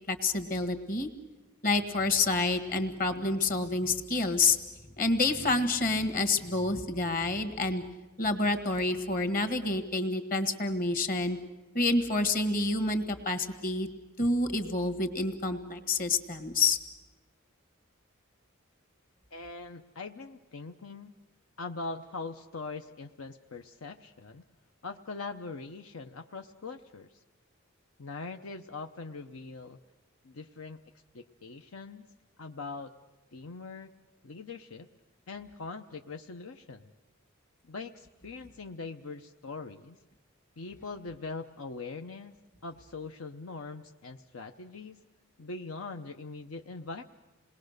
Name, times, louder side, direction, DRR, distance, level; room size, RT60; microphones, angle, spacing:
voice 1, 0.1-1.1 1.6-4.6 5.0-7.8 8.2-11.4 11.7-13.9 14.2-16.8, left 3 dB, 40° left, 9 dB, 1.7 m, -28 dB
voice 2, 19.3-21.1 21.6-24.4 24.8-27.2 28.0-29.8 30.2-30.8 31.1-32.1 32.4-32.9 33.3-33.9 34.2-34.9 35.3-36.8 37.6-40.0 40.6-42.3 42.6-45.0 45.4-47.0, left 3 dB, 75° left, 5 dB, 0.8 m, -42 dB
27.5 x 20.5 x 6.6 m, 1.2 s
head